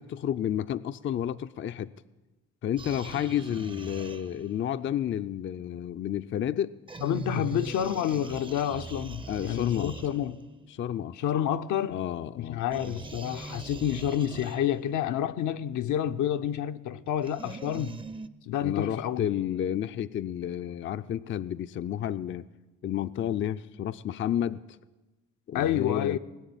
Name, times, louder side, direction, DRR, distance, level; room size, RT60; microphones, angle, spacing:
voice 1, 0.0-1.9 2.6-6.7 9.3-9.9 10.7-11.2 11.9-12.6 18.6-22.5 22.8-24.6 25.5-26.2, left 10 dB, 40° left, 0.4 m, -31 dB
sound 1, 2.8-4.7 6.9-10.6 12.7-15.0 17.2-18.3, right 3 dB, 15° right, 0.5 m, -41 dB
voice 2, 7.0-10.4 11.2-12.0 12.4-18.0 18.5-19.3 25.5-26.2, left 10 dB, 75° left, 0.7 m, -29 dB
20.0 x 6.8 x 9.7 m
cardioid pair, 90°, 30 cm